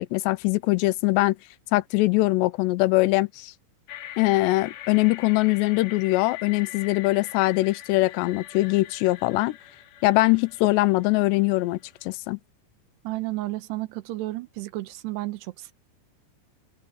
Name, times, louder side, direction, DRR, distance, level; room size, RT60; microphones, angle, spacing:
voice 1, 0.0-1.4 1.7-3.5 4.2-9.6 10.0-12.4, left 20 dB, 90° left, 2.9 m, -22 dB
sound 1, 3.9-12.1, left 12 dB, 70° left, 3.2 m, -43 dB
voice 2, 13.0-15.7, right 18 dB, 80° right, 3.0 m, -32 dB
open air
omnidirectional pair, 4.9 m